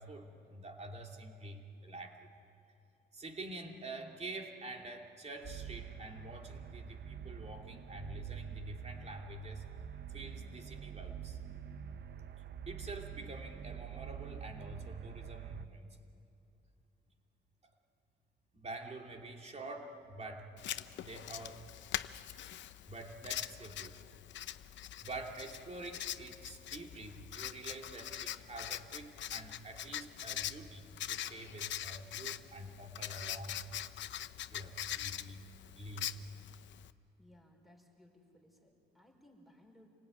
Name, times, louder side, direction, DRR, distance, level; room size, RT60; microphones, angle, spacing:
voice 1, 0.0-2.3 3.1-9.6 10.1-11.4 12.7-15.9 18.5-20.5 21.0-21.6 22.9-24.2 25.0-33.6 34.5-35.4 35.8-36.2, right 2 dB, 35° right, 2 dB, 2.9 m, -47 dB
sound 1, 5.4-15.7, right 8 dB, 60° right, 0.9 m, -46 dB
Writing, 20.6-36.9, left 11 dB, 70° left, 0.7 m, -43 dB
voice 2, 37.2-39.9, left 1 dB, ahead, 1 dB, 4.7 m, -62 dB
27.5 x 18.5 x 9.4 m, 2.7 s
cardioid pair, 90°, 20 cm